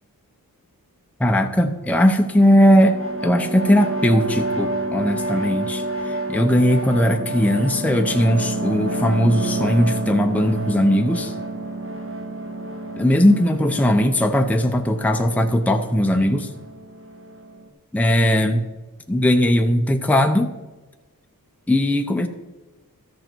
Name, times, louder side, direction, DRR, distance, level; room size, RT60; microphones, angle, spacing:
voice 1, 1.2-3.0 3.2-11.3 13.0-16.5 17.9-18.7 19.1-20.5 21.7-22.3, equal, 5° left, 5 dB, 0.7 m, -18 dB
sound 1, 2.2-17.7, right 2 dB, 40° right, 1.2 m, -29 dB
13.5 x 6.5 x 4.5 m, 1.2 s
wide cardioid pair, 80°, 35 cm